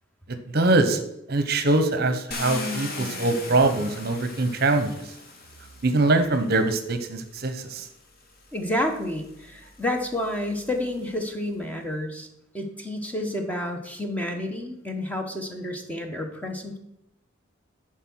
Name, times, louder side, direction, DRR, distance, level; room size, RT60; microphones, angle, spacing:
voice 1, 0.5-1.0 1.3-5.0 5.8-7.9, right 2 dB, 50° right, 9 dB, 0.8 m, -23 dB
Car, 2.3-6.4 7.4-7.5 8.0-11.3, left 3 dB, 45° left, 1.5 m, -38 dB
voice 2, 8.5-12.3 12.5-16.8, left 1 dB, 5° left, 3 dB, 1.0 m, -30 dB
11.0 x 4.7 x 6.1 m, 0.82 s
head